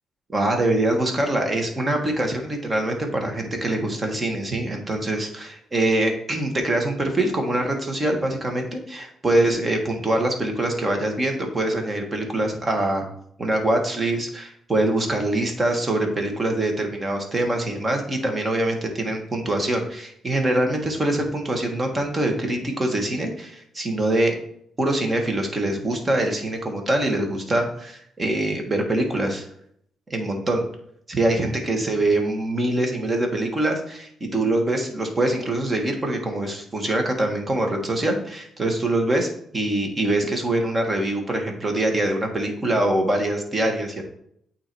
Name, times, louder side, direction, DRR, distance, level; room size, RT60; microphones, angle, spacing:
voice 1, 0.3-13.1 13.4-24.4 24.8-29.5 30.1-30.6 31.1-44.0, right 1 dB, 25° right, 3 dB, 1.5 m, -24 dB
8.6 x 2.9 x 4.6 m, 0.68 s
cardioid pair, 90°, 0 cm